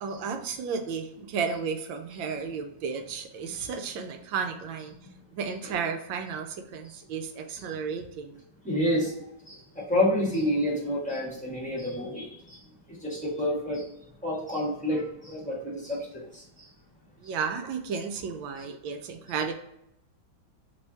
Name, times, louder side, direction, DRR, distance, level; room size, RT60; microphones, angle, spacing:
voice 1, 0.0-4.9 5.3-8.4 17.2-19.5, right 5 dB, 80° right, 5 dB, 1.3 m, -33 dB
voice 2, 8.6-9.2 9.4-12.6 12.9-13.9 14.2-16.7 17.2-17.3, left 1 dB, 5° left, -6 dB, 1.2 m, -29 dB
3.4 x 3.3 x 4.0 m, 0.80 s
omnidirectional pair, 2.1 m